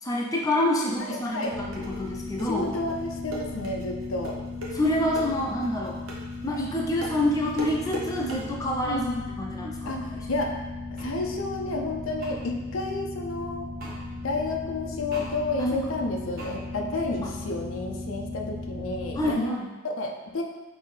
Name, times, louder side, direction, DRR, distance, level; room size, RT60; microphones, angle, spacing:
voice 1, 0.0-2.7 4.7-6.0 6.4-9.1 9.4-10.3 17.2-17.3 19.2-19.7, left 1 dB, 15° left, -3 dB, 0.5 m, -27 dB
sound 1, 1.0-8.4, right 1 dB, 75° right, 0.9 m, -39 dB
voice 2, 1.1-1.6 2.5-4.4 8.8-9.2 9.9-10.5 11.0-13.7 14.2-19.6 19.8-20.4, left 2 dB, 75° left, 2 dB, 0.5 m, -31 dB
sound 2, 1.5-19.3, left 2 dB, 25° right, 0.6 m, -37 dB
sound 3, 11.0-11.1 12.2-12.3 13.8-14.0 15.1-15.3 16.4-16.5, right 2 dB, 50° right, 1.2 m, -40 dB
5.4 x 2.7 x 3.2 m, 1.2 s
head